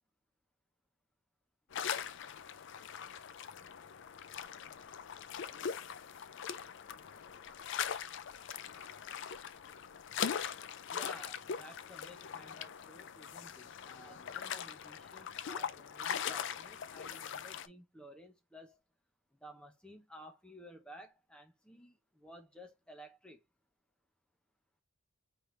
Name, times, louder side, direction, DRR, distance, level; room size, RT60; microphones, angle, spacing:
sound 1, 1.7-17.7, left 8 dB, 55° left, 0.4 m, -41 dB
voice 1, 10.9-18.8 19.4-23.4, equal, 5° left, 0.8 m, -54 dB
4.3 x 3.3 x 3.2 m
head